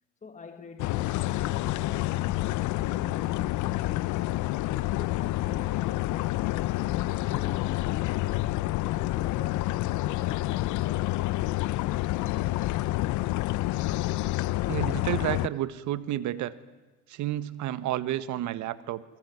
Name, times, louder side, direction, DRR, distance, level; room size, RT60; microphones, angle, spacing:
voice 1, 0.2-4.3 4.6-12.8, left 5 dB, 20° left, 1.6 m, -47 dB
sound 1, 0.8-15.5, left 17 dB, 65° left, 0.8 m, -28 dB
voice 2, 14.7-16.5 17.1-19.0, right 13 dB, 60° right, 1.5 m, -31 dB
28.0 x 20.0 x 9.5 m
supercardioid pair, 95°, 32 cm